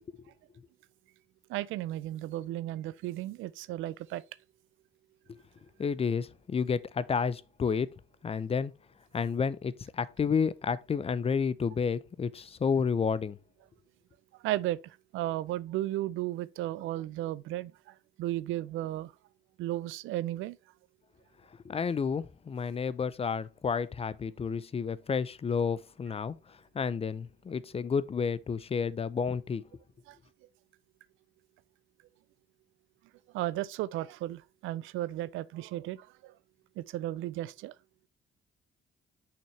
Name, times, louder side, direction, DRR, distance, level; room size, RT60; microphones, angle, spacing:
voice 1, 1.5-4.2 14.4-19.1 19.6-20.6 30.1-30.2 33.3-36.3 36.8-37.7, right 15 dB, 90° right, 0.4 m, -34 dB
voice 2, 5.8-7.9 8.2-8.7 9.1-13.4 21.6-29.6, left 6 dB, 30° left, 0.5 m, -31 dB
6.2 x 5.8 x 3.2 m
cardioid pair, 90°, 20 cm